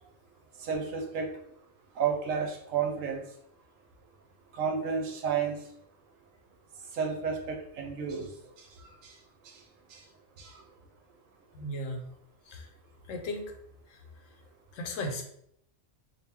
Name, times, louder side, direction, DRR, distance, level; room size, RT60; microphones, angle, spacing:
voice 1, 0.6-1.3 1.9-3.2 4.5-5.6 6.9-8.3 8.6-9.1 9.4-9.6 9.9-10.0 10.4-10.6, right 6 dB, 85° right, 2 dB, 1.1 m, -32 dB
voice 2, 11.5-12.1 12.5-12.7 13.1-13.5 13.9-14.0 14.7-15.2, left 1 dB, 85° left, 3 dB, 1.1 m, -36 dB
3.7 x 2.6 x 3.5 m, 0.72 s
omnidirectional pair, 1.3 m